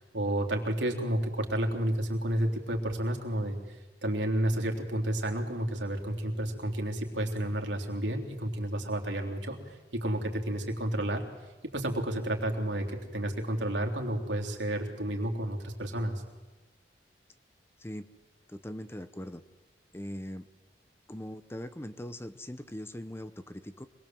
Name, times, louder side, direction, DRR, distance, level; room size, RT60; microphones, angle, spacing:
voice 1, 0.0-3.6 4.0-11.2 11.7-16.2, right 1 dB, 80° right, 3 dB, 3.5 m, -31 dB
voice 2, 18.5-19.4 19.9-20.5 21.1-23.9, equal, 15° left, 11 dB, 0.8 m, -41 dB
26.0 x 21.0 x 7.7 m, 1.2 s
head